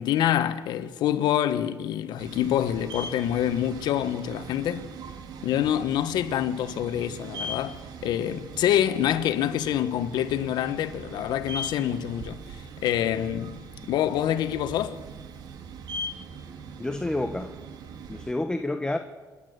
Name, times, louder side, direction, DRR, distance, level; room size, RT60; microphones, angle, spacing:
voice 1, 0.0-4.9 5.4-12.4 12.8-13.6 13.9-15.0, left 11 dB, 80° left, 1.3 m, -26 dB
sound 1, 2.2-18.3, right 2 dB, 70° right, 2.6 m, -40 dB
voice 2, 16.8-17.5 18.1-19.0, left 2 dB, 10° left, 1.2 m, -29 dB
28.5 x 11.5 x 8.2 m
cardioid pair, 110°, 7 cm